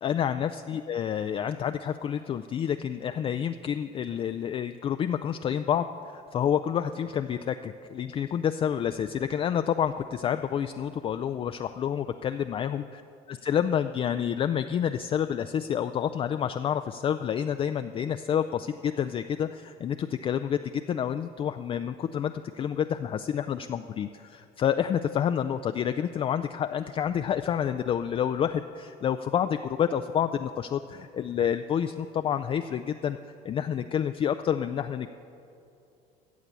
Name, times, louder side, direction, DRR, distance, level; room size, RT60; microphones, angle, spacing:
voice 1, 0.0-13.0 13.3-33.2 33.4-35.1, left 9 dB, 30° left, 9 dB, 0.3 m, -29 dB
14.5 x 7.3 x 8.2 m, 2.6 s
cardioid pair, 120°, 18 cm